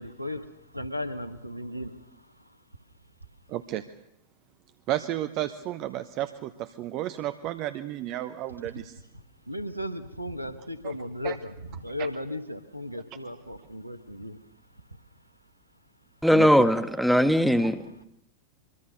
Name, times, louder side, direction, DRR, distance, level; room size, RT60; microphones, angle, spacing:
voice 1, 0.0-2.6 9.1-14.4 17.6-17.7, left 1 dB, 90° right, 11 dB, 1.6 m, -36 dB
voice 2, 3.5-3.8 4.9-8.9 10.8-10.9 11.2-11.4 12.0-12.1 16.3-16.5, right 13 dB, 40° right, 12 dB, 0.9 m, -32 dB
voice 3, 16.2-17.8, equal, ahead, 9 dB, 1.4 m, -20 dB
24.0 x 24.0 x 6.7 m, 0.81 s
figure-of-eight pair, 90°, 0 cm